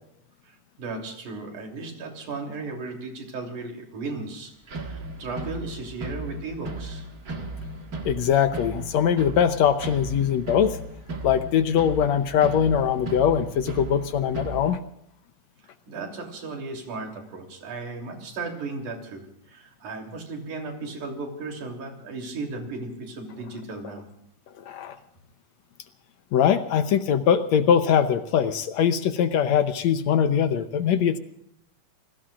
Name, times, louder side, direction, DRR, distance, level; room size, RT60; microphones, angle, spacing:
voice 1, 0.4-7.1 15.9-24.1, right 3 dB, 75° right, 2 dB, 4.5 m, -36 dB
sound 1, 4.7-14.7, right 2 dB, 35° right, 1.7 m, -36 dB
voice 2, 8.0-10.8 11.2-14.8 24.6-25.0 26.3-31.2, left 8 dB, 70° left, 9 dB, 1.9 m, -22 dB
28.5 x 19.0 x 2.5 m, 0.77 s
omnidirectional pair, 3.5 m